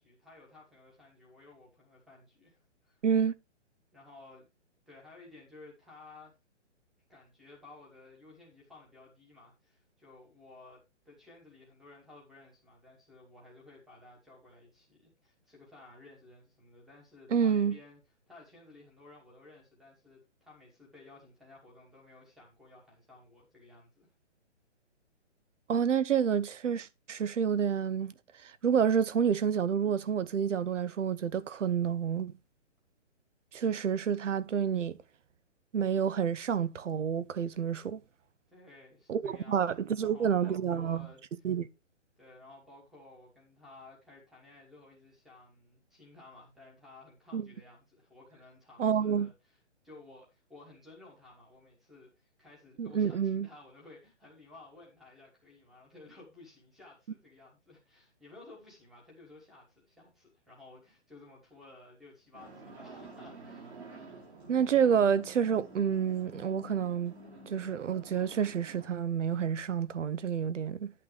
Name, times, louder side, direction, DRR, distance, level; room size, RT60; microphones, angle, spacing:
voice 1, 0.0-3.0 3.9-4.5 4.9-6.3 7.1-18.0 18.3-24.1 38.5-41.5 42.2-49.6 49.8-63.7, left 2 dB, ahead, 1.2 m, -55 dB
voice 2, 3.0-3.3 17.3-17.8 25.7-28.1 28.4-32.3 33.5-35.0 35.7-38.0 39.1-41.1 41.4-41.7 47.3-47.5 48.8-49.3 52.8-53.5 64.5-67.1 67.5-70.9, right 7 dB, 80° right, 0.8 m, -29 dB
sound 1, 62.3-68.9, right 2 dB, 60° right, 4.6 m, -49 dB
9.8 x 8.6 x 3.2 m
hypercardioid pair, 175°, 36 cm